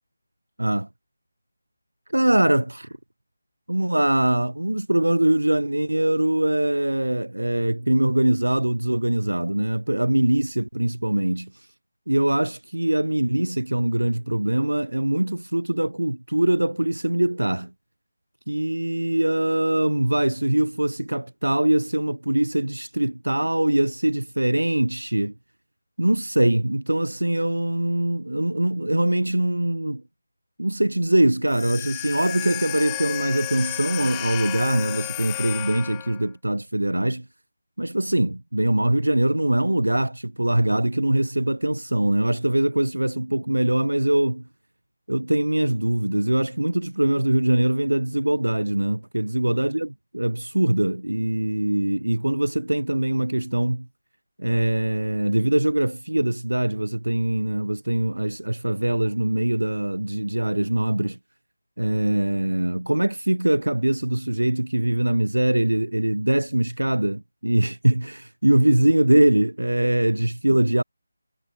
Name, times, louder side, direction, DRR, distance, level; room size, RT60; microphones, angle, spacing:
voice 1, 0.6-0.9 2.1-2.9 3.7-11.7 12.1-17.7 18.5-25.3 26.0-30.0 30.6-37.2 37.8-44.4 45.1-49.9 50.1-53.9 54.4-61.2 61.8-70.8, right 1 dB, 90° right, 1.3 m, -22 dB
sound 1, 31.5-36.3, left 23 dB, 15° left, 1.3 m, -32 dB
figure-of-eight pair, 160°, 0 cm